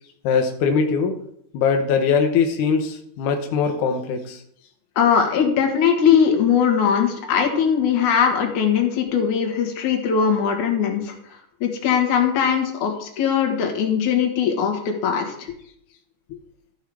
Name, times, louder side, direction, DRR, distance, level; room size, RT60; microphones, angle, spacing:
voice 1, 0.2-1.2 1.5-4.4 16.3-16.4, left 5 dB, 85° left, 4 dB, 1.7 m, -21 dB
voice 2, 5.0-11.1 11.6-15.5, left 7 dB, 60° left, 3 dB, 2.3 m, -20 dB
13.5 x 5.7 x 4.7 m, 0.70 s
omnidirectional pair, 4.8 m